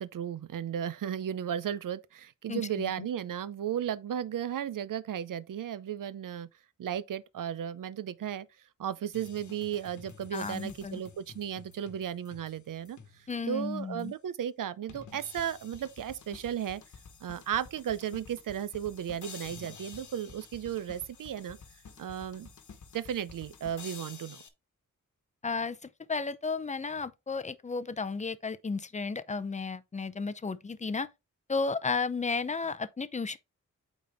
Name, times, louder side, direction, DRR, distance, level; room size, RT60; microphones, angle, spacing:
voice 1, 0.0-6.5 6.8-16.8 17.2-21.6 22.0-22.5 22.9-24.4, right 9 dB, 85° right, 0.6 m, -35 dB
voice 2, 2.5-2.9 10.3-11.0 13.3-14.1 25.4-25.8 26.1-31.1 31.5-33.4, left 4 dB, 25° left, 0.5 m, -33 dB
sound 1, 9.1-13.6 14.0-14.1 14.9-24.5, left 5 dB, 65° left, 1.1 m, -50 dB
8.6 x 4.2 x 3.4 m
wide cardioid pair, 145°, 31 cm